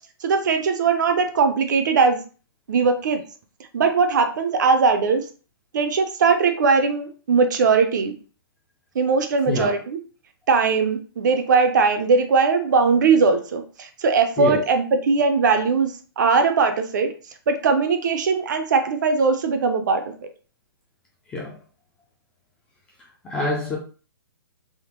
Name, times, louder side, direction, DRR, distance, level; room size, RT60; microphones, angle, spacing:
voice 1, 0.2-2.2 2.7-3.2 3.7-5.2 5.7-8.1 9.0-10.0 10.5-17.1 17.5-20.1, right 4 dB, 50° right, 0.5 m, -20 dB
voice 2, 9.5-9.8 14.4-14.6 21.3-21.6 23.2-23.8, left 1 dB, 5° left, 0.4 m, -25 dB
3.4 x 2.0 x 2.9 m
hypercardioid pair, 160°, 13 cm